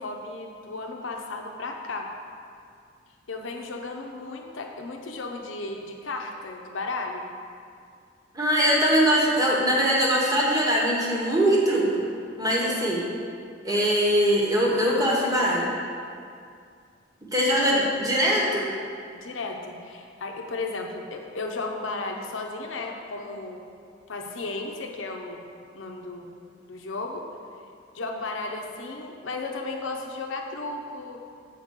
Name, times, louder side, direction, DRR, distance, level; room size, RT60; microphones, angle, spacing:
voice 1, 0.0-2.1 3.3-7.3 12.4-12.9 17.6-17.7 19.1-23.6 24.1-25.4 25.7-26.3 26.7-27.2 27.9-31.2, left 3 dB, 85° left, 2 dB, 0.7 m, -34 dB
voice 2, 8.3-11.9 12.4-13.0 13.6-15.7 17.3-18.7, equal, 20° right, -3 dB, 1.2 m, -22 dB
7.2 x 3.7 x 6.4 m, 2.3 s
head